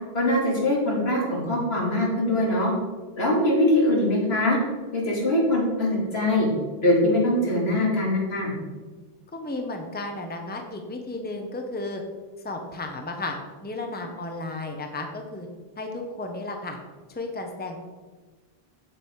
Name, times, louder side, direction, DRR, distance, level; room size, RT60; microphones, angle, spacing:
voice 1, 0.1-2.7 3.2-4.6 4.9-6.5 6.8-8.5, left 1 dB, 80° left, -3 dB, 2.7 m, -22 dB
voice 2, 9.3-12.0 12.4-13.4 13.6-15.5 15.8-16.8 17.1-17.8, left 2 dB, 10° left, 3 dB, 0.9 m, -33 dB
7.7 x 7.6 x 4.6 m, 1.3 s
omnidirectional pair, 1.0 m